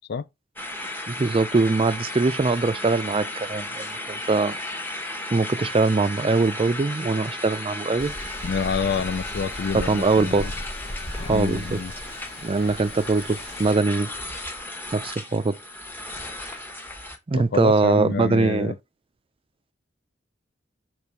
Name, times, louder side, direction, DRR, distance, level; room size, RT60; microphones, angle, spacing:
sound 1, 0.6-17.2, left 1 dB, 10° left, 1.0 m, -35 dB
voice 1, 1.1-4.6 5.3-8.2 9.7-10.5 11.3-11.8 12.4-14.1 14.9-15.6 17.3-18.7, right 3 dB, 30° right, 0.4 m, -22 dB
sound 2, 8.0-13.7, left 1 dB, 30° left, 1.0 m, -37 dB
voice 2, 8.4-10.5 11.2-11.9 17.3-18.8, left 5 dB, 60° left, 0.4 m, -28 dB
6.9 x 3.2 x 4.6 m
head